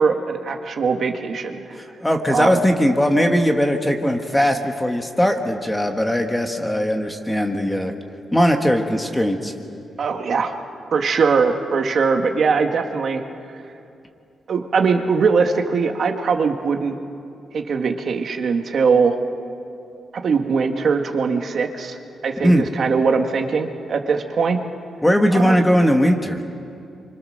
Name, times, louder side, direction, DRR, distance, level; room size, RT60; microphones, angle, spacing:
voice 1, 0.0-1.6 2.3-2.5 10.0-10.5 10.9-13.2 14.5-16.9 17.5-19.1 20.2-22.0 22.2-24.6 25.3-25.6, right 5 dB, 50° right, 4 dB, 1.7 m, -21 dB
voice 2, 1.8-7.9 8.3-9.5 22.4-22.7 25.0-26.4, equal, 5° left, 4 dB, 1.4 m, -19 dB
29.5 x 25.0 x 6.6 m, 2.5 s
wide cardioid pair, 165°, 0 cm